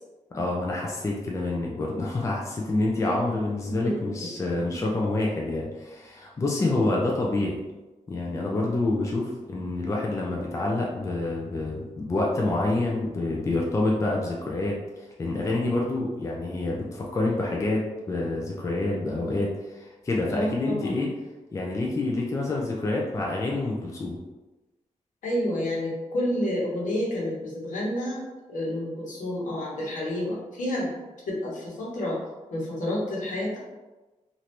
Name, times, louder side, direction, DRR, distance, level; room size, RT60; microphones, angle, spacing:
voice 1, 0.3-7.6 8.1-21.1 21.5-24.2, left 2 dB, 25° left, -2 dB, 0.4 m, -27 dB
voice 2, 3.7-4.1 4.7-4.9 20.2-21.0 25.2-28.2 28.5-30.9 31.3-32.2 32.5-33.6, left 1 dB, 80° left, -5 dB, 1.1 m, -29 dB
3.2 x 2.6 x 2.9 m, 1.1 s
wide cardioid pair, 155°, 13 cm